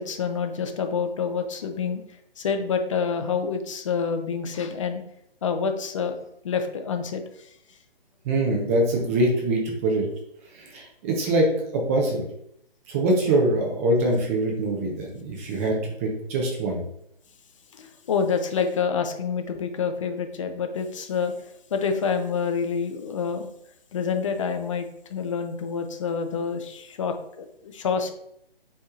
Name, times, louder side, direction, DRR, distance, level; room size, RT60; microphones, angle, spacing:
voice 1, 0.0-2.0 2.4-5.0 5.4-6.1 6.4-7.2 17.7-21.3 21.7-23.5 23.9-28.1, left 6 dB, 35° left, 6 dB, 0.5 m, -27 dB
voice 2, 8.3-10.0 10.6-12.2 12.9-16.8, right 1 dB, 15° right, -1 dB, 0.5 m, -24 dB
4.5 x 4.2 x 2.4 m, 0.73 s
figure-of-eight pair, 140°, 30 cm